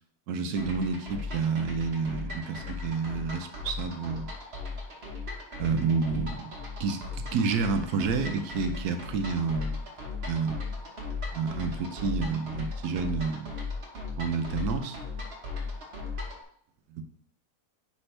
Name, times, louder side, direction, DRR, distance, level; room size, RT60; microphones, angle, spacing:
voice 1, 0.3-4.3 5.6-6.5 6.8-7.0 7.3-9.8 10.3-10.6 11.3-13.5 14.2-15.0 16.9-17.0, right 5 dB, 80° right, 7 dB, 1.2 m, -29 dB
sound 1, 0.6-16.4, left 3 dB, 45° right, 1.3 m, -37 dB
9.8 x 3.5 x 3.3 m, 0.64 s
omnidirectional pair, 1.7 m